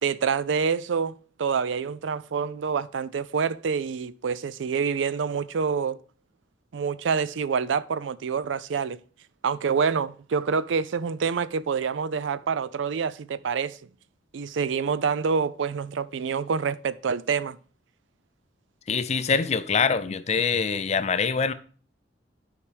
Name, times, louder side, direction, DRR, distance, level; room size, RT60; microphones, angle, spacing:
voice 1, 0.0-6.0 6.7-9.0 9.4-13.8 14.3-17.6, right 6 dB, 85° right, 0.4 m, -27 dB
voice 2, 18.9-21.5, left 5 dB, 35° left, 0.5 m, -24 dB
12.5 x 4.9 x 3.4 m
head